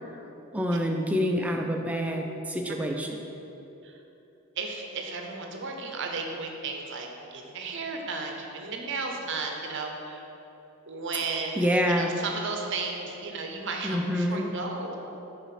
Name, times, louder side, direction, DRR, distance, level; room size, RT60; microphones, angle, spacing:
voice 1, 0.5-3.1 11.6-12.1 13.8-14.5, equal, 5° right, 2 dB, 0.4 m, -27 dB
voice 2, 4.6-10.2 10.9-15.0, right 4 dB, 55° right, 2 dB, 0.7 m, -34 dB
7.1 x 4.1 x 5.8 m, 3.0 s
head